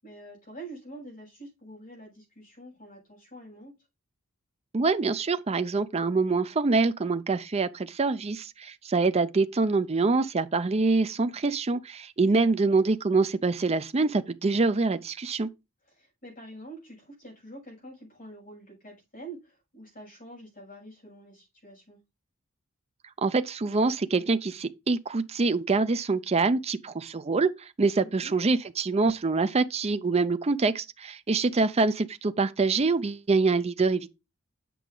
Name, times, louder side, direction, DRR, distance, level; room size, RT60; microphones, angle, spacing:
voice 1, 0.0-3.7 12.4-12.5 15.9-22.0 28.2-28.3, right 2 dB, 40° left, 6.0 m, -46 dB
voice 2, 4.7-15.5 23.2-34.1, right 3 dB, 30° right, 0.5 m, -25 dB
8.4 x 5.9 x 3.8 m
head